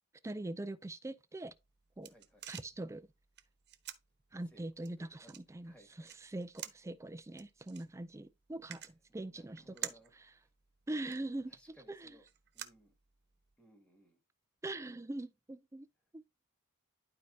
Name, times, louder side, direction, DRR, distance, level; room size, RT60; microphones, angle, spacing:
voice 1, 0.2-1.5 2.0-2.1 2.5-3.1 4.3-9.9 10.9-11.6 11.9-12.2 14.6-15.9 16.1-16.2, right 2 dB, 15° right, 0.4 m, -42 dB
sound 1, 1.5-13.5, right 11 dB, 50° right, 1.0 m, -51 dB
voice 2, 2.0-2.5 4.5-5.4 5.6-6.2 8.7-8.9 9.3-10.5 11.5-12.2 12.5-12.9 13.6-14.2, right 1 dB, 5° left, 2.1 m, -64 dB
12.0 x 4.6 x 2.7 m
head